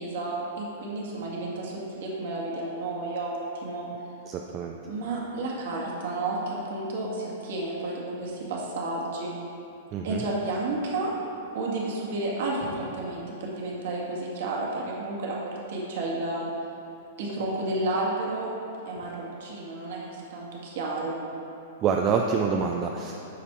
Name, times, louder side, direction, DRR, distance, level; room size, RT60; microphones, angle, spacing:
voice 1, 0.0-3.4 3.6-3.9 4.8-9.4 10.0-11.1 11.5-16.5 17.2-18.5 18.9-21.2, right 2 dB, 55° right, -4 dB, 1.8 m, -31 dB
voice 2, 4.3-4.8 9.9-10.2 21.8-23.1, right 6 dB, 35° right, 1 dB, 0.5 m, -26 dB
10.5 x 4.2 x 4.7 m, 2.8 s
figure-of-eight pair, 105°, 0 cm